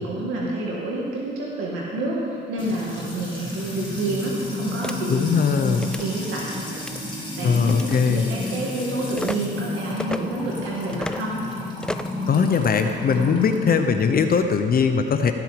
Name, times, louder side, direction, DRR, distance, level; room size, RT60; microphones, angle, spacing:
voice 1, 0.0-5.1 5.8-6.5 7.4-7.7 8.0-11.4, right 2 dB, 85° right, -4 dB, 1.9 m, -28 dB
Music / Water tap faucet / Trickle dribble, 2.6-14.4, left 1 dB, 25° left, 2.8 m, -32 dB
sound 1, 4.8-5.0 5.8-6.1 6.7-7.0 7.7-8.0 9.2-9.4 10.0-10.2 10.9-11.2 11.8-12.2, left 1 dB, 5° left, 0.4 m, -31 dB
voice 2, 5.1-5.9 7.4-8.2 12.3-15.3, left 6 dB, 50° left, 7 dB, 0.7 m, -20 dB
17.5 x 6.3 x 5.1 m, 2.2 s
cardioid pair, 90°, 20 cm